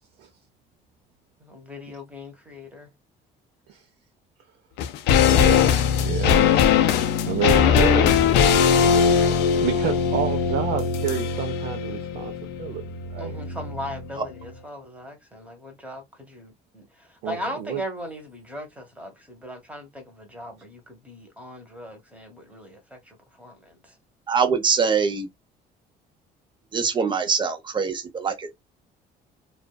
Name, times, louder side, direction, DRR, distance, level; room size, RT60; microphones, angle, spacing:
voice 1, 1.4-2.9 13.2-23.9, left 1 dB, 10° right, 0.9 m, -38 dB
sound 1, 4.8-14.2 14.4-14.5, left 7 dB, 85° left, 0.4 m, -20 dB
voice 2, 5.1-6.6 7.3-8.6 9.2-12.3 12.6-12.8 13.1-13.4 17.2-17.8, right 9 dB, 75° right, 0.6 m, -29 dB
voice 3, 24.3-25.3 26.7-28.5, right 5 dB, 30° right, 0.6 m, -23 dB
2.5 x 2.3 x 2.2 m
cardioid pair, 110°, 17 cm